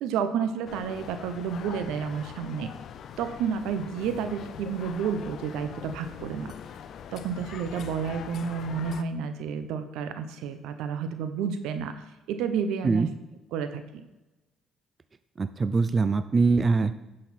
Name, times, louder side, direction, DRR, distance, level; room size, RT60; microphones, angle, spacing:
voice 1, 0.0-2.7 3.2-6.5 7.1-11.9 12.3-13.1 13.5-14.0, right 7 dB, 75° right, 10 dB, 0.7 m, -30 dB
sound 1, 0.7-9.0, left 8 dB, 60° left, 0.5 m, -42 dB
voice 2, 15.4-17.0, right 4 dB, 35° right, 12 dB, 0.5 m, -23 dB
9.4 x 6.5 x 4.3 m, 1.0 s
supercardioid pair, 60°, 0 cm